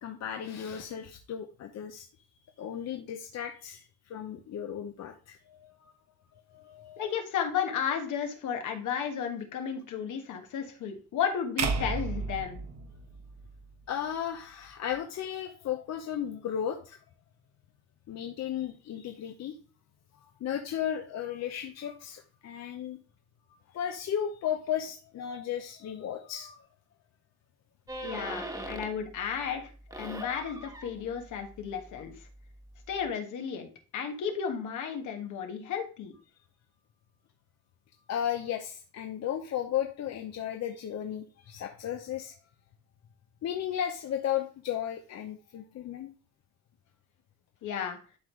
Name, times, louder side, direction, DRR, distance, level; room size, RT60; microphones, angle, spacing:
voice 1, 0.0-2.1 2.6-5.9 6.5-7.1 13.9-17.0 18.1-19.6 20.4-23.0 23.7-26.7 29.9-30.2 38.1-42.3 43.4-46.1, left 9 dB, 60° left, 5 dB, 0.7 m, -35 dB
voice 2, 7.0-12.6 28.0-29.7 30.0-32.1 32.9-36.1 47.6-48.0, left 7 dB, 80° left, 4 dB, 1.4 m, -33 dB
sound 1, 11.6-13.8, right 5 dB, 60° right, 1.0 m, -33 dB
sound 2, 27.9-29.1 29.5-33.1, right 1 dB, 10° right, 1.3 m, -42 dB
11.0 x 3.8 x 3.1 m, 0.37 s
cardioid pair, 90°, 30 cm